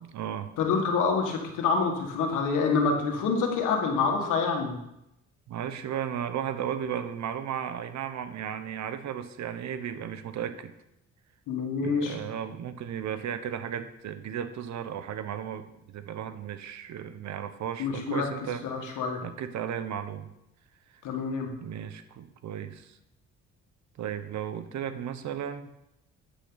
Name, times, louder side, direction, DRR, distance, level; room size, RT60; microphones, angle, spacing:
voice 1, 0.0-0.5 5.5-10.7 11.8-20.3 21.6-23.0 24.0-25.7, right 9 dB, 65° right, 11 dB, 0.9 m, -35 dB
voice 2, 0.6-4.8 11.5-12.2 17.8-18.3 18.6-19.2 21.0-21.5, left 5 dB, 85° left, 2 dB, 1.8 m, -27 dB
9.7 x 8.4 x 4.0 m, 0.85 s
cardioid pair, 90°, 30 cm